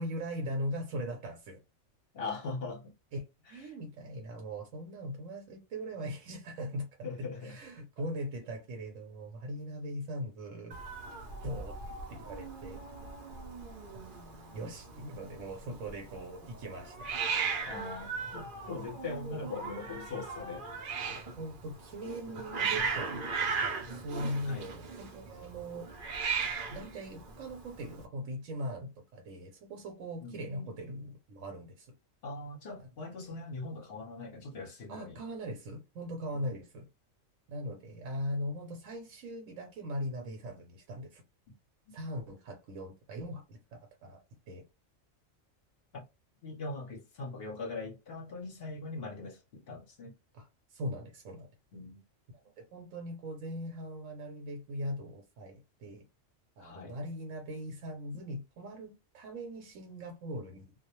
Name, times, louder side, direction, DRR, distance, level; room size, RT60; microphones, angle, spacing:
voice 1, 0.0-1.6 3.1-3.2 3.5-6.9 7.2-10.7 11.4-11.7 12.1-12.8 14.5-17.0 21.1-25.9 26.7-31.9 32.8-32.9 34.9-36.9 37.5-41.2 41.9-44.6 50.3-51.5 52.6-56.0 56.6-60.7, equal, 75° right, 1.0 m, -40 dB
voice 2, 2.1-2.9 3.5-3.7 7.0-7.6 17.7-20.6 24.4-24.7 30.2-30.7 32.2-35.2 36.3-36.5 41.5-41.6 41.9-42.0 45.9-46.0 46.4-50.1 51.7-52.0 56.6-57.0, left 3 dB, 55° left, 0.8 m, -41 dB
Hiss, 10.7-28.0, right 5 dB, 55° right, 0.6 m, -38 dB
2.3 x 2.0 x 2.9 m
omnidirectional pair, 1.4 m